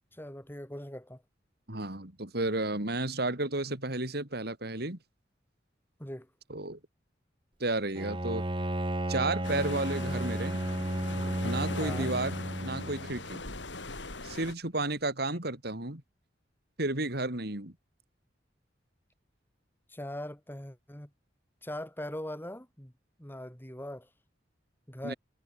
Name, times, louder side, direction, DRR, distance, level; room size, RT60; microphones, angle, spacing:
voice 1, 0.1-1.2 6.0-6.3 11.8-12.1 19.9-21.1 21.6-22.9 23.2-24.1 24.9-25.1, left 1 dB, 10° left, 4.0 m, -41 dB
voice 2, 1.7-5.0 6.5-6.8 7.6-8.4 9.1-10.6 11.4-13.4 14.2-16.0 16.8-17.7 25.0-25.1, right 2 dB, 60° right, 3.8 m, -32 dB
Bowed string instrument, 8.0-13.3, right 1 dB, 30° right, 2.2 m, -33 dB
sound 1, 9.4-14.5, left 3 dB, 80° left, 6.0 m, -40 dB
head